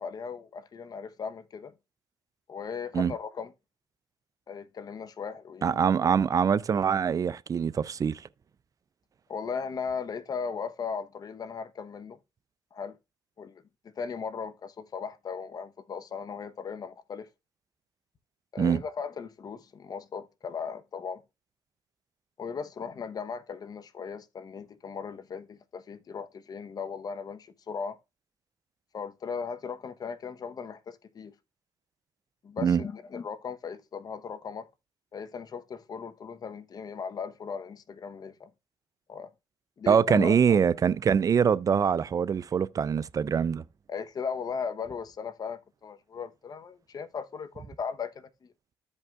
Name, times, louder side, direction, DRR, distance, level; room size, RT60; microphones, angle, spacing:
voice 1, 0.0-1.7 2.5-3.5 4.5-6.1 9.3-12.2 12.7-13.0 13.4-17.3 18.5-21.2 22.4-28.0 28.9-31.3 32.4-34.7 35.1-38.5 39.1-39.3 39.8-40.6 43.9-48.5, left 6 dB, 45° left, 0.9 m, -37 dB
voice 2, 5.6-8.2 18.6-18.8 32.6-32.8 39.9-43.6, right 7 dB, 40° right, 0.5 m, -24 dB
13.5 x 5.3 x 2.4 m
cardioid pair, 80°, 9 cm